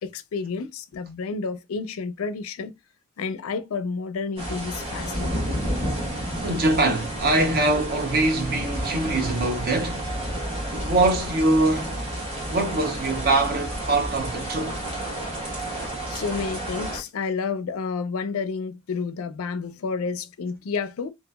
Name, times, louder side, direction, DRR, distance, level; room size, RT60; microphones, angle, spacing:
voice 1, 0.0-2.7 3.2-5.6 16.1-21.1, left 5 dB, 75° left, 0.4 m, -30 dB
sound 1, 4.4-17.0, right 1 dB, 25° right, 1.1 m, -30 dB
voice 2, 6.4-10.2 10.7-12.0 12.5-14.8, right 2 dB, 45° right, 0.6 m, -23 dB
2.8 x 2.4 x 2.2 m
head